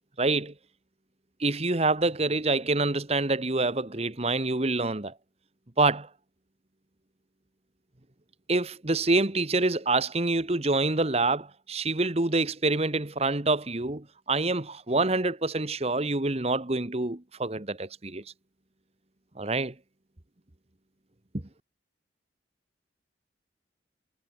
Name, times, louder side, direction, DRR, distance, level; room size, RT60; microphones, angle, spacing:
voice 1, 0.2-0.5 1.4-5.1 5.8-6.1 8.5-18.2 19.4-19.7, right 2 dB, 35° right, 1.4 m, -26 dB
head